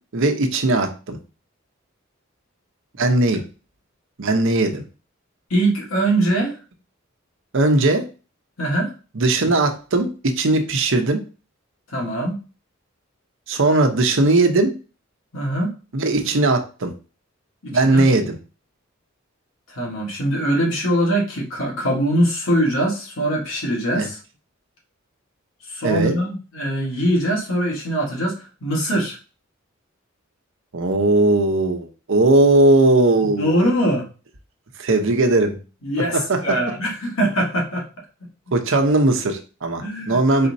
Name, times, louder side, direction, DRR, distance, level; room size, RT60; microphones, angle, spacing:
voice 1, 0.1-1.2 3.0-3.4 4.2-4.8 7.5-8.0 9.1-11.2 13.5-14.7 15.9-16.9 17.7-18.4 24.0-24.1 25.8-26.1 30.7-33.6 34.8-35.6 36.3-36.6 38.5-40.5, right 2 dB, 65° right, 5 dB, 0.8 m, -18 dB
voice 2, 5.5-6.6 8.6-8.9 11.9-12.4 15.3-15.7 17.6-18.1 19.7-24.2 25.7-29.2 33.2-34.1 35.8-36.2 36.4-37.9 39.8-40.2 40.4-40.5, right 1 dB, 90° left, -1 dB, 1.7 m, -22 dB
4.2 x 4.1 x 2.7 m, 0.34 s
head